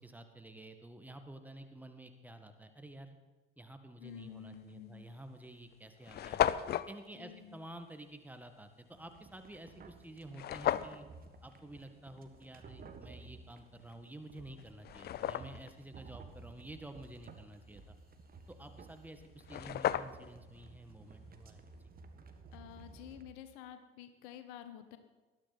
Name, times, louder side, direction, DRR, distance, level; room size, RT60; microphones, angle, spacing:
voice 1, 0.0-3.2 3.6-6.4 6.9-11.1 11.4-18.0 18.5-21.6, right 1 dB, 5° right, 7 dB, 1.8 m, -51 dB
voice 2, 4.0-5.1 7.1-7.6 22.5-25.0, left 10 dB, 60° left, 9 dB, 1.3 m, -50 dB
sound 1, 4.5-4.7 5.4-5.5 5.7-5.8 6.0-6.9 10.3-11.0 13.9-14.0 14.6-15.7 19.1-19.2 19.4-20.4, left 11 dB, 35° left, 0.6 m, -34 dB
sound 2, 8.9-23.2, right 4 dB, 30° right, 1.5 m, -55 dB
20.0 x 12.5 x 4.2 m, 1.3 s
figure-of-eight pair, 60°, 29 cm